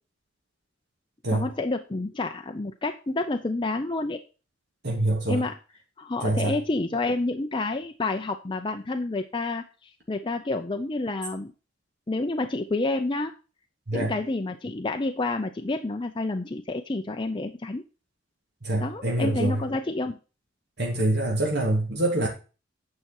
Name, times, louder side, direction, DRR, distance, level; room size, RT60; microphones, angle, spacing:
voice 1, 1.3-4.2 5.3-5.6 6.0-11.5 12.1-13.3 13.9-17.8 18.8-20.2, left 2 dB, 25° left, 0.6 m, -29 dB
voice 2, 4.8-5.4 6.2-6.5 13.9-14.1 18.6-19.6 20.8-22.3, right 1 dB, 60° right, 2.9 m, -25 dB
9.7 x 6.0 x 4.4 m
head